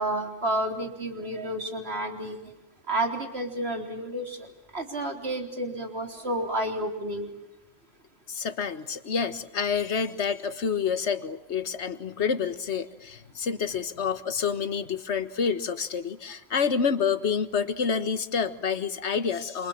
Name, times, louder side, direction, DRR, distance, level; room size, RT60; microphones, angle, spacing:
voice 1, 0.0-2.4 2.9-4.5 4.7-7.3, right 1 dB, 50° right, 4 dB, 4.3 m, -30 dB
voice 2, 8.3-19.7, left 6 dB, 60° left, 11 dB, 1.7 m, -28 dB
28.0 x 27.5 x 7.3 m, 0.88 s
omnidirectional pair, 1.3 m